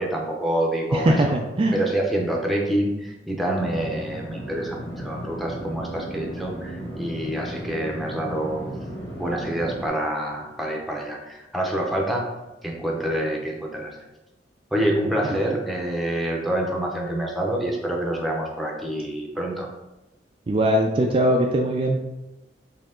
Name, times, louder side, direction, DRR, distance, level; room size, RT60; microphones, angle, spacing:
voice 1, 0.0-1.2 1.7-8.6 9.1-12.3 12.6-13.9 14.7-19.7, right 1 dB, ahead, -1 dB, 0.7 m, -27 dB
voice 2, 0.9-1.8 20.5-22.0, right 1 dB, 30° right, 1 dB, 0.3 m, -20 dB
sound 1, 3.5-9.9, equal, 90° left, 1.2 m, -35 dB
4.5 x 2.8 x 3.7 m, 1.0 s
head